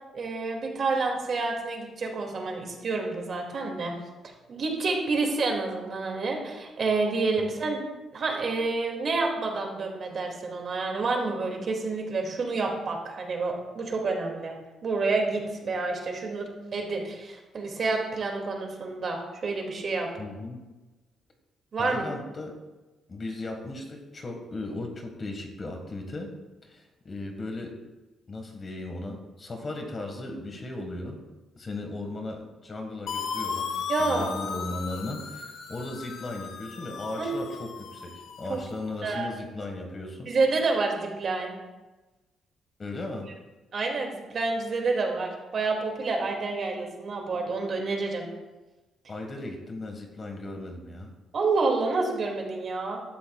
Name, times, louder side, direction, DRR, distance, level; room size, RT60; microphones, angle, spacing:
voice 1, 0.1-3.9 4.5-7.8 8.1-14.5 14.8-20.1 21.7-22.0 33.9-34.4 37.2-37.4 38.5-38.6 39.0-39.3 40.3-41.5 43.7-48.3 51.3-53.0, right 3 dB, 45° right, 1 dB, 2.3 m, -28 dB
voice 2, 20.2-20.6 21.8-22.5 23.1-26.3 26.6-27.8 28.3-31.2 31.6-40.3 42.8-43.3 49.1-51.1, left 2 dB, 30° left, 3 dB, 1.6 m, -37 dB
sound 1, 33.1-38.8, left 6 dB, 65° left, 1.2 m, -36 dB
15.5 x 12.0 x 2.4 m, 1.1 s
cardioid pair, 145°, 0 cm